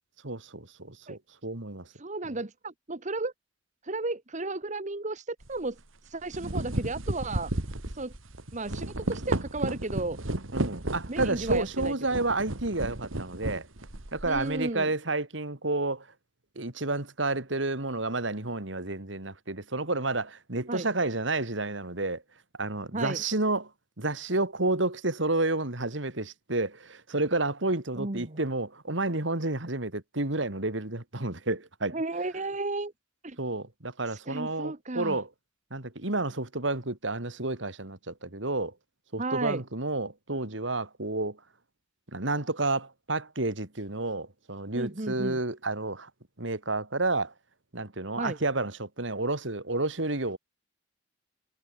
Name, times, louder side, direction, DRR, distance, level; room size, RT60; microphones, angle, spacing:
voice 1, 0.2-1.9 10.5-13.7 14.1-16.1 16.6-22.2 22.6-23.7 24.0-32.0 33.4-35.3 35.7-38.7 39.1-41.4 42.1-46.1 46.4-47.3 47.7-50.4, right 2 dB, 65° right, 2.9 m, -30 dB
voice 2, 1.9-3.3 3.8-5.8 6.0-7.5 7.9-8.1 8.5-10.2 11.1-11.9 14.2-14.9 20.7-20.9 22.9-23.2 28.0-28.4 31.9-32.9 33.2-33.4 34.1-35.2 39.2-39.6 44.7-45.4 48.2-48.4, right 2 dB, 35° right, 1.3 m, -34 dB
sound 1, 5.4-5.6 6.1-14.6, right 1 dB, 85° right, 2.4 m, -33 dB
head